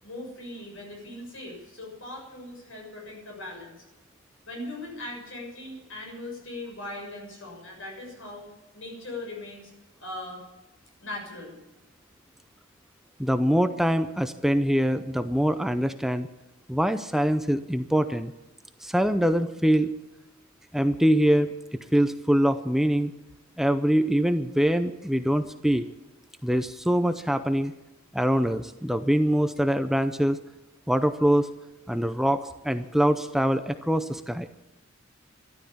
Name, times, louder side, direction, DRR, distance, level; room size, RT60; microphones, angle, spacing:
voice 1, 0.0-3.8 4.5-8.5 8.7-9.7 10.0-10.4 11.0-11.6, left 2 dB, 75° left, 0 dB, 7.1 m, -39 dB
voice 2, 13.2-16.3 16.7-18.3 18.8-19.9 20.7-21.5 21.9-23.1 23.6-25.9 26.4-27.7 28.1-30.4 30.9-31.5 31.9-34.5, equal, ahead, 9 dB, 0.5 m, -24 dB
13.5 x 12.0 x 8.6 m, 1.0 s
head